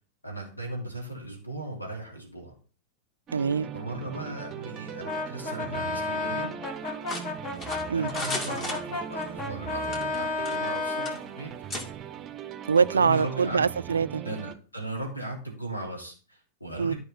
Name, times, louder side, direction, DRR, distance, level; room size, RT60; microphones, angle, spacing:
voice 1, 0.2-2.5 3.7-6.5 7.9-11.5 12.8-13.6 14.2-16.9, right 2 dB, 85° left, 2.7 m, -37 dB
sound 1, 3.3-14.5, right 9 dB, 30° right, 0.7 m, -40 dB
voice 2, 3.3-3.7 7.9-8.1 12.7-14.2 16.8-16.9, right 6 dB, 70° right, 0.3 m, -24 dB
Brass instrument, 5.0-11.2, left 3 dB, 45° left, 2.4 m, -32 dB
sound 2, 7.1-9.3 9.8-10.8 11.0-11.2 11.7-11.9, left 2 dB, 30° left, 2.3 m, -35 dB
13.5 x 4.7 x 4.0 m
figure-of-eight pair, 90°, 0 cm